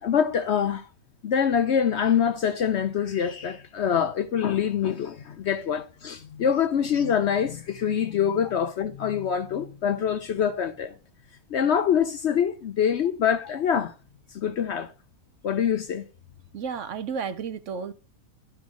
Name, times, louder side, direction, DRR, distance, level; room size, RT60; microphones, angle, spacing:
voice 1, 0.0-0.9 1.2-10.9 11.5-13.9 14.3-14.9 15.4-16.0, left 8 dB, 60° left, 0.8 m, -25 dB
voice 2, 16.5-17.9, right 6 dB, 65° right, 0.9 m, -32 dB
11.0 x 4.4 x 6.1 m
omnidirectional pair, 1.6 m